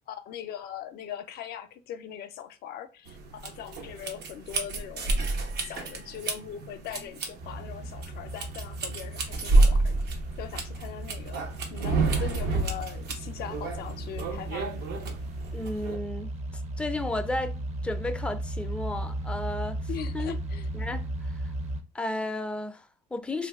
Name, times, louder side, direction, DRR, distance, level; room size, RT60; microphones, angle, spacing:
voice 1, 0.1-5.2 5.5-10.0 10.4-11.4 11.7-14.9 19.9-20.7, left 9 dB, 70° left, 0.4 m, -40 dB
sound 1, 3.1-16.0, right 3 dB, 80° right, 0.8 m, -29 dB
sound 2, 7.4-21.8, right 1 dB, 40° right, 0.6 m, -36 dB
voice 2, 15.5-16.4 16.8-20.4 20.7-21.3 21.9-23.5, left 2 dB, 5° left, 0.4 m, -33 dB
2.5 x 2.3 x 3.4 m
cardioid pair, 110°, 17 cm